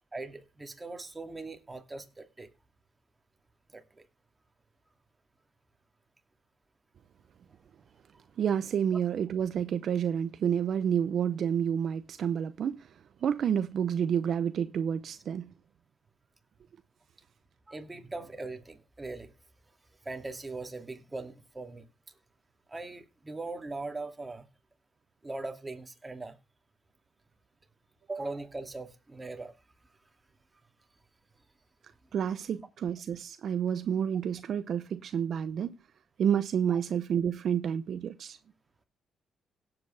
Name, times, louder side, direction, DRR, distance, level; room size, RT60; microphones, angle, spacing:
voice 1, 0.1-2.5 3.7-3.8 17.7-19.3 20.0-21.9 22.7-24.5 25.2-26.3 28.1-29.5 36.7-36.8, right 3 dB, 20° right, 2.5 m, -40 dB
voice 2, 8.4-12.9 13.2-15.5 32.1-35.7 36.2-38.4, right 8 dB, 60° right, 0.6 m, -29 dB
17.0 x 8.1 x 3.4 m
cardioid pair, 90°, 0 cm